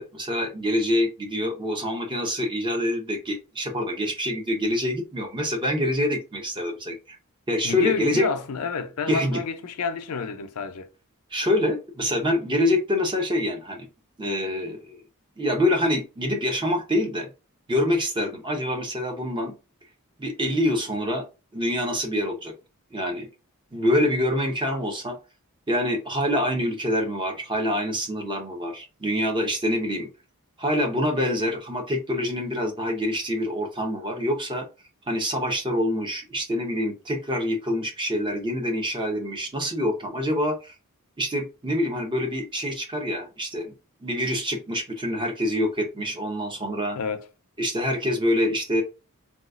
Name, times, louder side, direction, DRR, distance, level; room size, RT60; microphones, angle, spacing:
voice 1, 0.0-7.2 7.5-8.3 9.1-9.4 11.3-13.9 14.2-15.0 15.4-17.3 17.7-19.5 20.2-21.2 21.5-22.5 22.9-23.3 23.7-25.2 25.7-30.1 30.6-34.6 35.1-40.7 41.2-43.7 44.0-47.0 47.6-48.8, left 1 dB, 20° right, 0.7 m, -26 dB
voice 2, 7.6-10.9 46.9-47.3, left 5 dB, 85° left, 0.5 m, -29 dB
3.9 x 2.3 x 2.4 m
head